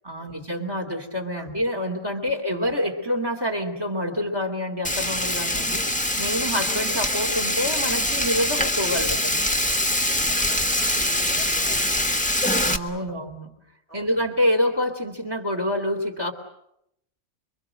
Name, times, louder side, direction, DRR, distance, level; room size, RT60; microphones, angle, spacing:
voice 1, 0.0-9.4 12.6-13.5 13.9-16.3, left 1 dB, 20° right, 4 dB, 2.9 m, -27 dB
Frying (food), 4.8-12.8, left 1 dB, 5° left, 1.3 m, -24 dB
voice 2, 9.7-11.0 11.3-12.3 12.9-13.2 13.9-14.1, equal, 50° right, 2 dB, 4.3 m, -45 dB
27.0 x 23.5 x 7.7 m, 0.79 s
omnidirectional pair, 1.2 m